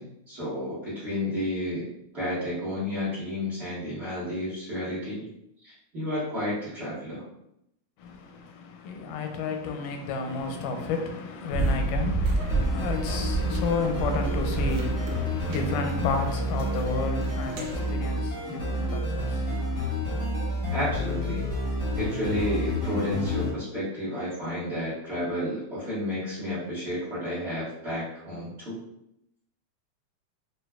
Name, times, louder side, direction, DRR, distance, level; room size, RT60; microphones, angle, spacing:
voice 1, 0.0-1.9 2.1-5.3 5.6-7.2 20.7-21.4 21.9-28.8, left 1 dB, 65° right, 0.6 m, -31 dB
voice 2, 8.0-20.0, left 4 dB, 85° left, 2.1 m, -32 dB
sound 1, 11.5-18.1, right 3 dB, 85° right, 1.4 m, -31 dB
sound 2, 12.5-23.5, equal, 50° left, 0.8 m, -29 dB
6.6 x 2.2 x 2.3 m
omnidirectional pair, 3.6 m